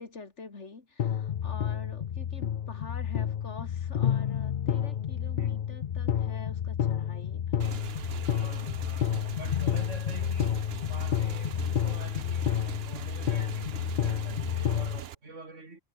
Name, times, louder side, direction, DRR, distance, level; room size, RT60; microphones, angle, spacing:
voice 1, 0.0-8.1, left 3 dB, 70° left, 2.9 m, -47 dB
sound 1, 1.0-15.0, left 9 dB, 50° left, 0.7 m, -30 dB
Motorcycle / Engine, 7.6-15.1, right 10 dB, 60° right, 0.9 m, -42 dB
voice 2, 8.3-10.6 10.9-15.8, right 3 dB, 85° right, 3.9 m, -47 dB
omnidirectional pair, 1.2 m